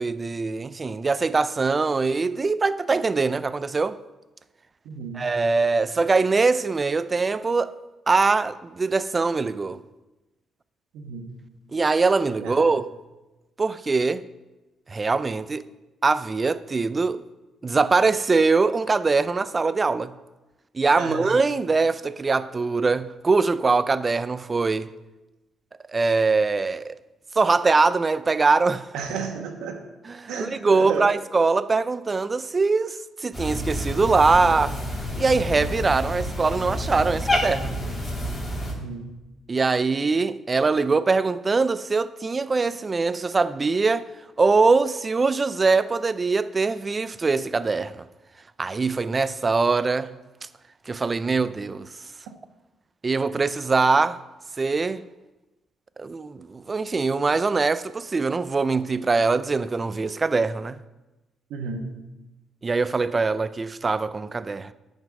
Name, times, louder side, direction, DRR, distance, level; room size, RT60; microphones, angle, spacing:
voice 1, 0.0-4.0 5.1-7.7 8.1-9.8 11.7-12.9 13.6-14.2 14.9-15.7 16.0-17.2 17.6-20.1 20.7-24.9 25.9-27.0 27.3-28.9 30.0-34.8 35.2-37.8 39.5-44.1 44.4-48.1 48.6-50.2 50.9-51.9 53.0-54.2 54.6-55.0 56.0-60.8 62.6-64.7, right 4 dB, 30° right, 0.4 m, -22 dB
voice 2, 4.8-5.3 10.9-11.3 12.4-12.5 20.9-21.3 28.9-29.8 30.3-31.1 38.7-39.1 61.5-62.0, right 5 dB, 85° right, 1.3 m, -32 dB
Cat, 33.3-38.7, left 1 dB, 20° left, 2.9 m, -29 dB
9.5 x 5.3 x 6.3 m
cardioid pair, 90°, 0 cm